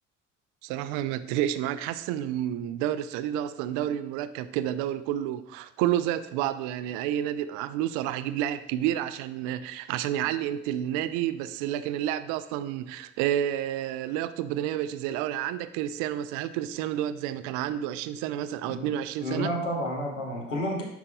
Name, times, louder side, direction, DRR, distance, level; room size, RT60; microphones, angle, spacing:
voice 1, 0.6-19.5, right 11 dB, 55° right, 13 dB, 0.4 m, -30 dB
voice 2, 19.2-20.8, equal, 80° left, 0 dB, 1.2 m, -30 dB
9.0 x 5.3 x 2.3 m, 0.79 s
figure-of-eight pair, 50°, 37 cm